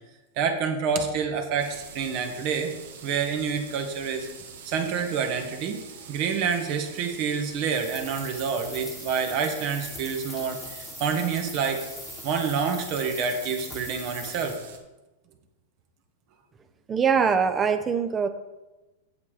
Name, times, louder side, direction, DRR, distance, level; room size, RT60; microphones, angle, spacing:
voice 1, 0.4-2.7 3.0-4.3 4.6-5.8 6.1-11.8 12.2-14.5, right 6 dB, 50° right, 4 dB, 1.7 m, -28 dB
sound 1, 1.6-14.8, right 6 dB, 75° right, 1.4 m, -45 dB
sound 2, 7.6-14.6, left 2 dB, 10° left, 1.4 m, -42 dB
voice 2, 16.9-18.3, right 6 dB, 20° right, 9 dB, 0.9 m, -22 dB
8.3 x 7.5 x 5.0 m, 1.1 s
hypercardioid pair, 110°, 0 cm